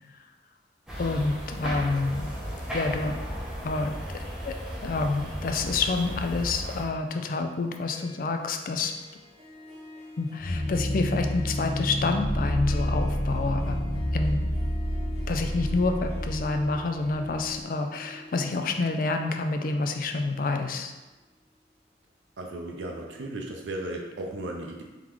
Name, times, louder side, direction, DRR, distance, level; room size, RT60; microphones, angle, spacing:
sound 1, 0.9-6.8, equal, 5° right, 0.7 m, -35 dB
voice 1, 1.0-2.3 2.7-3.2 3.6-4.5 4.8-8.9 10.2-13.8 14.1-14.4 15.3-20.9, left 3 dB, 50° left, 5 dB, 0.3 m, -28 dB
Harp, 7.8-21.6, left 2 dB, 35° right, 1.1 m, -46 dB
sound 2, 10.4-17.6, equal, 80° left, 0.8 m, -29 dB
voice 2, 22.4-24.8, right 1 dB, 85° right, 1 dB, 0.5 m, -35 dB
3.7 x 3.6 x 3.0 m, 1.2 s
head